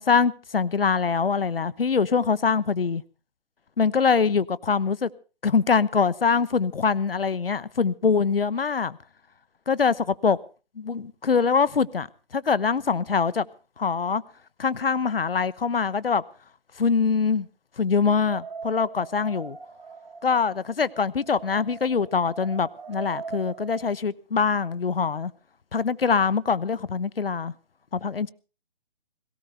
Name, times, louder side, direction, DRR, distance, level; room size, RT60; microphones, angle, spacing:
voice 1, 0.0-3.0 3.8-5.1 5.4-9.0 9.7-10.4 10.8-12.1 12.3-13.4 13.8-14.2 14.6-16.2 16.8-17.5 17.8-19.6 20.2-25.3 25.7-27.5 27.9-28.3, left 5 dB, 60° left, 1.0 m, -23 dB
sound 1, 18.2-23.9, right 5 dB, 45° right, 2.7 m, -40 dB
22.0 x 17.5 x 3.3 m
figure-of-eight pair, 145°, 33 cm